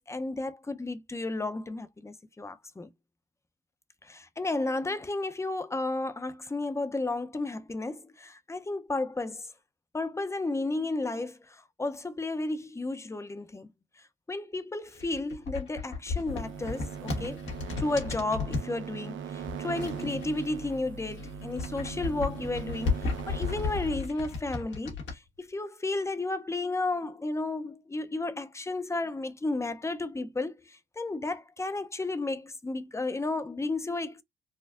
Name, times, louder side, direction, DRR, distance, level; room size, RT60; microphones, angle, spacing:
voice 1, 0.0-2.9 4.0-9.5 9.9-13.7 14.3-17.4 17.8-34.2, left 2 dB, 15° left, 0.5 m, -33 dB
sound 1, 14.9-18.7 19.4-20.7 21.1-25.2, left 4 dB, 70° left, 1.6 m, -34 dB
sound 2, 16.3-24.1, right 7 dB, 75° right, 0.7 m, -40 dB
4.3 x 2.4 x 2.4 m
cardioid pair, 90°, 20 cm